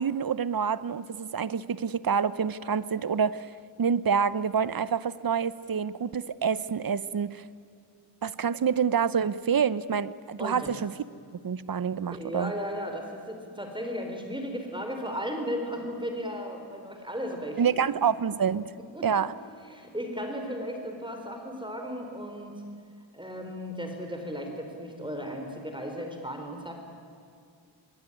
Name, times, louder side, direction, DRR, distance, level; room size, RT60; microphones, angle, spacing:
voice 1, 0.0-3.5 3.8-7.4 8.2-10.9 11.4-12.5 17.6-18.6 19.0-19.3, right 7 dB, 50° right, 17 dB, 0.9 m, -27 dB
voice 2, 10.4-10.7 12.1-17.8 18.9-19.3 19.7-22.6 23.1-26.7, equal, 10° right, 3 dB, 4.0 m, -35 dB
25.5 x 23.5 x 10.0 m, 2.3 s
wide cardioid pair, 100°, 45 cm